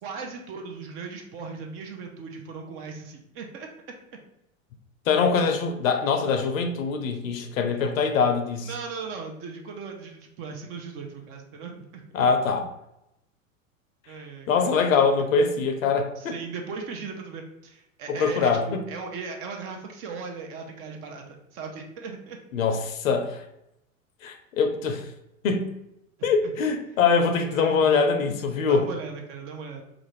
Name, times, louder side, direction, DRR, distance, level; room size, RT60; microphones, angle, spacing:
voice 1, 0.0-3.7 7.7-7.9 8.6-12.3 14.1-14.8 16.2-22.4 26.2-26.5 27.4-28.0 28.7-29.8, right 5 dB, 35° right, 3 dB, 0.5 m, -38 dB
voice 2, 5.1-8.7 12.1-12.7 14.5-16.3 18.1-18.8 22.5-23.4 24.2-25.1 25.4-25.7 26.2-28.8, left 5 dB, 75° left, 5 dB, 0.6 m, -23 dB
2.5 x 2.4 x 3.0 m, 0.84 s
figure-of-eight pair, 90°, 41 cm